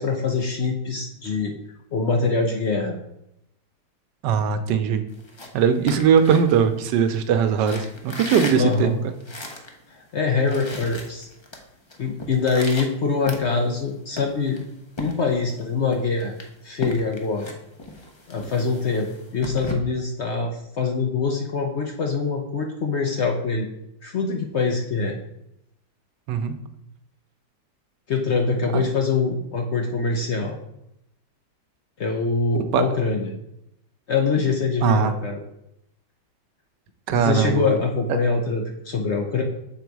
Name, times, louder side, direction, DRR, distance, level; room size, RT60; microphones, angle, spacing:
voice 1, 0.0-1.5 1.9-3.0 8.6-9.0 10.0-11.3 12.0-14.6 15.0-16.3 16.6-17.5 18.3-20.5 20.8-23.7 24.0-25.2 28.1-30.6 32.0-33.3 34.1-35.4 37.1-39.4, left 4 dB, 55° left, 2 dB, 0.8 m, -24 dB
voice 2, 4.2-5.0 5.5-9.0 26.3-26.6 28.7-28.8 32.7-32.8 34.8-35.1 37.1-37.8 38.1-38.2, right 7 dB, 85° right, 9 dB, 1.3 m, -20 dB
sound 1, 5.1-7.2 7.6-9.8 10.1-10.2 10.4-11.6 11.9-13.8 14.2-15.6 15.9-19.7, left 1 dB, 40° left, 0.4 m, -36 dB
6.9 x 3.9 x 4.6 m, 0.82 s
omnidirectional pair, 1.8 m